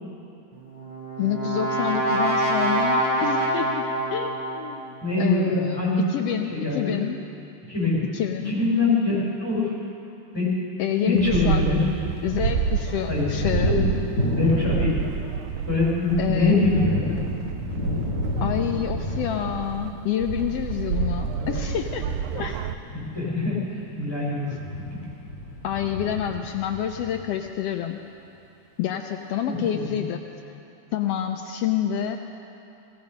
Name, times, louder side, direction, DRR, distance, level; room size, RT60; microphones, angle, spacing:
Brass instrument, 0.6-4.7, right 1 dB, 45° right, 3.8 m, -25 dB
voice 1, 1.2-7.2 8.1-8.5 10.8-11.6 12.2-13.8 16.2-16.7 18.4-22.1 22.3-22.7 25.6-28.0 28.8-30.2 30.9-32.2, left 10 dB, 85° left, 4 dB, 1.4 m, -28 dB
voice 2, 5.0-6.0 6.5-7.0 7.7-8.0 8.4-9.7 10.3-10.6 11.0-11.9 13.1-13.3 13.6-13.9 14.3-14.9 15.7-17.2 21.1-21.5 22.9-24.5 24.9-25.0 29.5-30.0, left 2 dB, 10° left, -7 dB, 4.8 m, -24 dB
Thunder, 10.9-12.1 12.4-27.7, left 1 dB, 30° left, 4.4 m, -31 dB
sound 1, 11.2-19.9 20.2-22.8, right 8 dB, 80° right, 1.4 m, -29 dB
17.5 x 15.0 x 5.3 m, 2.8 s
omnidirectional pair, 3.4 m